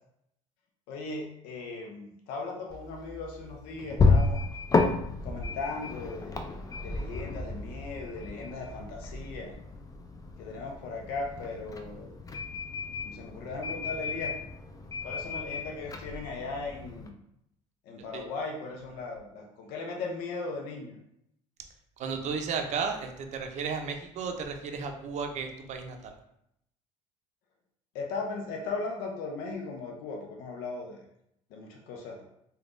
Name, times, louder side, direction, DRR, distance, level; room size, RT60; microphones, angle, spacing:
voice 1, 0.9-4.4 5.2-6.5 6.8-9.5 10.4-12.1 13.0-14.3 15.0-17.2 17.9-21.0 27.9-31.0 31.5-32.2, left 3 dB, 70° left, 1 dB, 0.5 m, -37 dB
sound 1, 2.7-17.1, left 3 dB, 20° left, 0.4 m, -32 dB
voice 2, 22.0-26.1, right 5 dB, 50° right, 5 dB, 0.5 m, -34 dB
3.3 x 2.2 x 2.5 m, 0.76 s
supercardioid pair, 80°, 16 cm